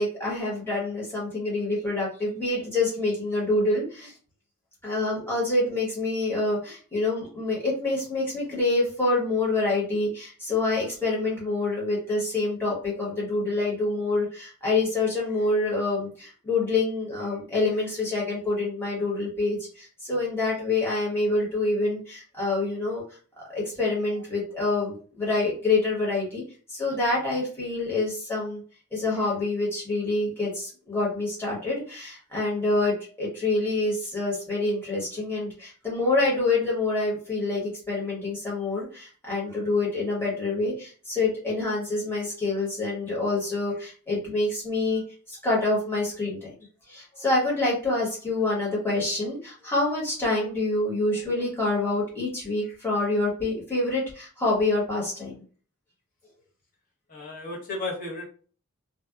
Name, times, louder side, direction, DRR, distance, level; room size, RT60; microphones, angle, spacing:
voice 1, 0.0-4.1 4.8-23.0 23.5-26.4 26.7-28.6 28.9-45.0 45.3-46.5 46.9-55.4, left 2 dB, 10° left, -6 dB, 1.1 m, -26 dB
voice 2, 57.1-58.3, left 2 dB, 40° left, -3 dB, 0.8 m, -33 dB
2.7 x 2.2 x 2.3 m, 0.41 s
head